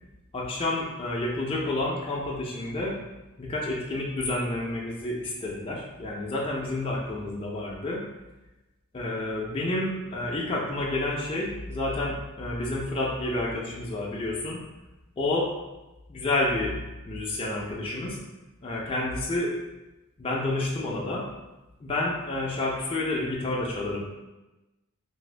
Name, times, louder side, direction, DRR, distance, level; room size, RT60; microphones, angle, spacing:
voice 1, 0.3-3.0 3.4-8.1 8.9-14.6 15.2-15.5 16.1-16.8 17.1-18.2 18.6-19.5 20.2-21.3 21.8-24.0, left 2 dB, 25° left, -3 dB, 0.4 m, -29 dB
2.8 x 2.5 x 3.2 m, 1.0 s
head